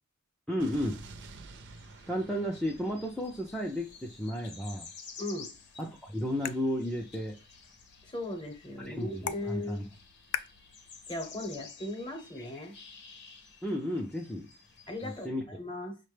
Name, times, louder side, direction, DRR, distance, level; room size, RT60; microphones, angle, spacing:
voice 1, 0.5-1.0 2.1-4.9 5.8-7.4 8.9-9.8 13.6-14.5 15.0-15.4, equal, 5° left, 0.4 m, -33 dB
Explosion, 0.6-4.6, right 3 dB, 55° right, 0.5 m, -50 dB
sound 1, 1.5-15.3, left 5 dB, 50° left, 0.7 m, -52 dB
voice 2, 5.2-5.5 8.0-9.8 11.1-12.7 14.9-16.0, left 1 dB, 20° left, 0.8 m, -38 dB
sound 2, 5.5-11.6, left 9 dB, 80° left, 0.3 m, -44 dB
5.6 x 2.1 x 3.2 m
head